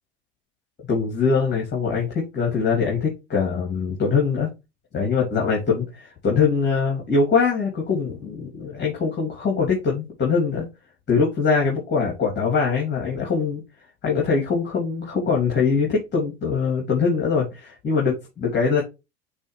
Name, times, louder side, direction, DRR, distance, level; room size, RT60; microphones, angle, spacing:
voice 1, 0.9-4.5 4.9-10.6 11.1-13.6 14.0-18.8, left 5 dB, 35° left, -2 dB, 3.2 m, -22 dB
8.9 x 3.3 x 3.5 m, 0.24 s
hypercardioid pair, 75°, 29 cm